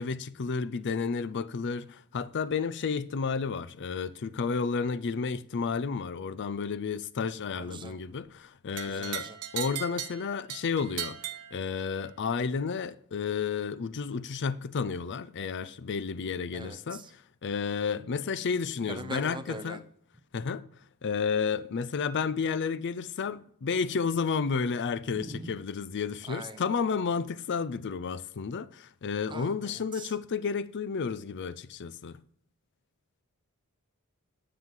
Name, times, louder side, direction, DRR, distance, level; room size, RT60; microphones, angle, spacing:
voice 1, 0.0-9.3 9.5-19.8 20.3-20.7 21.0-32.2, left 5 dB, 50° left, 0.5 m, -31 dB
voice 2, 7.5-7.9 8.9-9.4 16.5-17.1 18.9-19.8 25.1-25.6 26.3-26.6 29.3-30.1, right 2 dB, 20° right, 0.7 m, -42 dB
sound 1, 8.8-12.1, right 11 dB, 85° right, 0.9 m, -38 dB
9.7 x 7.7 x 3.8 m
head